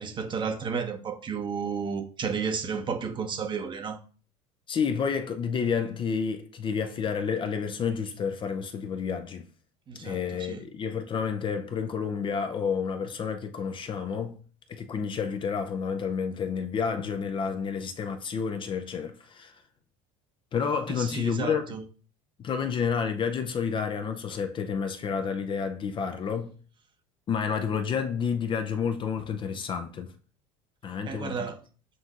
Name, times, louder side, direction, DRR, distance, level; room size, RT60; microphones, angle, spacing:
voice 1, 0.0-4.0 9.9-10.6 20.9-21.8 31.1-31.6, right 6 dB, 30° right, 0.8 m, -32 dB
voice 2, 4.7-9.5 10.0-14.4 14.7-19.6 20.5-21.7 22.4-26.5 27.3-30.1 30.8-31.3, left 6 dB, 30° left, 0.5 m, -30 dB
7.5 x 2.6 x 2.4 m
supercardioid pair, 105°, 16 cm